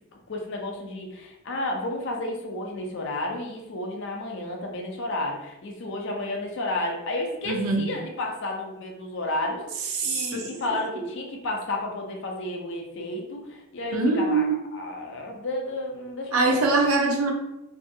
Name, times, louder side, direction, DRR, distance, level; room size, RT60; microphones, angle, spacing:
voice 1, 0.3-16.4 16.6-16.8, left 1 dB, 55° left, 1 dB, 0.5 m, -32 dB
voice 2, 7.5-7.9 9.9-10.5 10.9-11.1 13.9-14.6 16.3-17.3, right 3 dB, 75° right, 2 dB, 0.6 m, -23 dB
2.6 x 2.4 x 2.6 m, 0.93 s
head